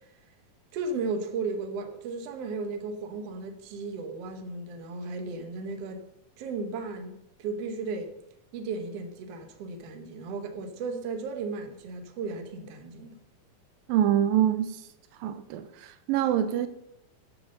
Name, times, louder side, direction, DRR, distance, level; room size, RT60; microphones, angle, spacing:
voice 1, 0.7-6.0 6.4-8.1 8.5-13.2, right 4 dB, 60° right, 1.7 m, -35 dB
voice 2, 13.9-14.8 15.2-16.7, right 11 dB, 85° right, 2.4 m, -25 dB
8.7 x 6.9 x 6.7 m
omnidirectional pair, 4.0 m